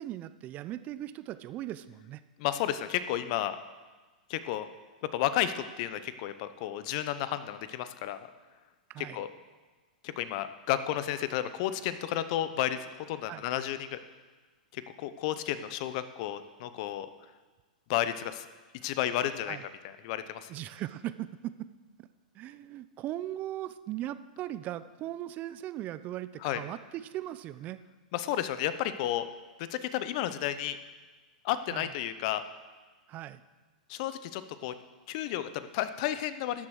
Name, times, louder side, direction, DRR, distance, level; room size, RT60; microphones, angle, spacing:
voice 1, 0.0-2.2 8.9-9.2 13.3-13.4 19.4-19.6 20.5-21.7 22.0-22.1 22.3-27.8 31.7-31.9 33.1-33.4, right 13 dB, 35° right, 14 dB, 0.6 m, -38 dB
voice 2, 2.4-3.6 4.3-4.7 5.1-8.2 9.0-9.3 10.0-14.0 14.7-17.1 17.9-18.5 18.8-19.6 19.8-20.5 26.4-26.6 28.1-29.3 29.6-30.8 31.4-32.4 33.9-34.7 35.1-36.7, left 12 dB, 50° left, 12 dB, 0.8 m, -32 dB
12.5 x 7.6 x 6.5 m, 1.3 s
hypercardioid pair, 115°, 5 cm